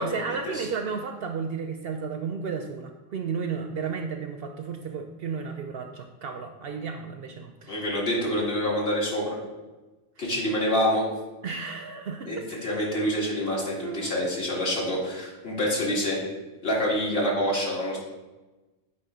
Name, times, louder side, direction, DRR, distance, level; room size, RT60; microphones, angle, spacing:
voice 1, 0.0-7.9 10.2-10.3 11.4-12.4 13.8-14.2, right 5 dB, 65° right, 5 dB, 0.7 m, -33 dB
voice 2, 7.7-9.3 10.2-11.0 12.3-16.2 16.6-18.0, equal, 55° left, -4 dB, 2.0 m, -26 dB
8.5 x 3.2 x 4.9 m, 1.1 s
omnidirectional pair, 1.2 m